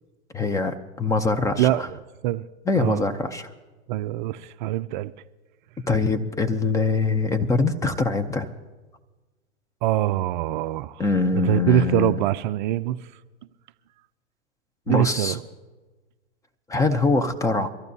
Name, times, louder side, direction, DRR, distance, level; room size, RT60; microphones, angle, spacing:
voice 1, 0.3-1.9 2.7-3.5 5.9-8.5 11.0-12.1 14.9-15.4 16.7-17.7, left 3 dB, 10° left, 0.5 m, -23 dB
voice 2, 3.9-5.1 9.8-11.0 11.4-13.0 14.9-15.4, right 14 dB, 45° right, 0.4 m, -23 dB
23.5 x 14.0 x 2.7 m
hypercardioid pair, 120°, 36 cm